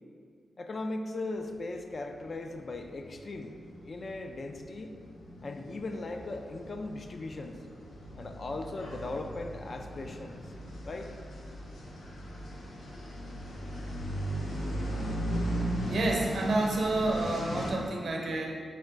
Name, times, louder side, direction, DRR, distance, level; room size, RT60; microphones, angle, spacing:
voice 1, 0.6-3.6 3.9-5.0 5.4-7.6 8.2-10.5 10.8-11.1, left 2 dB, 50° left, 5 dB, 0.3 m, -38 dB
sound 1, 2.2-2.3 2.6-17.7, equal, 90° left, 0.7 m, -38 dB
voice 2, 15.9-18.6, right 2 dB, 70° right, 0 dB, 0.6 m, -29 dB
3.5 x 3.1 x 3.8 m, 2.1 s
cardioid pair, 80°, 0 cm